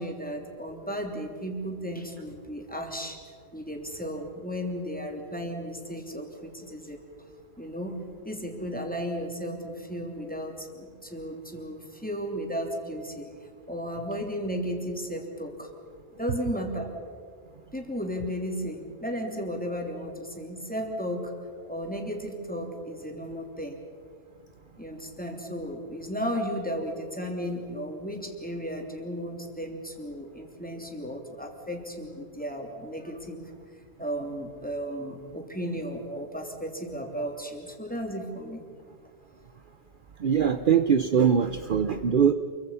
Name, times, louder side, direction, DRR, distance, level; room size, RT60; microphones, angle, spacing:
voice 1, 0.0-3.2 3.5-7.0 7.6-13.3 13.7-15.7 16.2-16.9 17.7-23.8 24.8-33.5 34.0-38.6, equal, 5° left, 2 dB, 3.1 m, -34 dB
voice 2, 40.2-42.3, right 7 dB, 50° right, 9 dB, 0.9 m, -22 dB
28.5 x 23.5 x 5.7 m, 2.1 s
omnidirectional pair, 1.2 m